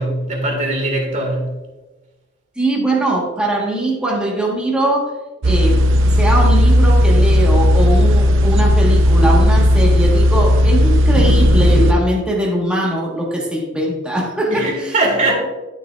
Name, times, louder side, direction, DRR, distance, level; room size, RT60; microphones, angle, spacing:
voice 1, 0.0-1.5 14.5-15.3, right 2 dB, 40° right, 1 dB, 2.1 m, -20 dB
voice 2, 2.6-5.1 5.4-5.8 6.2-14.9, right 1 dB, 5° right, -3 dB, 1.5 m, -20 dB
sound 1, 5.4-11.9, equal, 85° right, 0.6 m, -13 dB
11.5 x 7.0 x 2.5 m, 1.2 s
head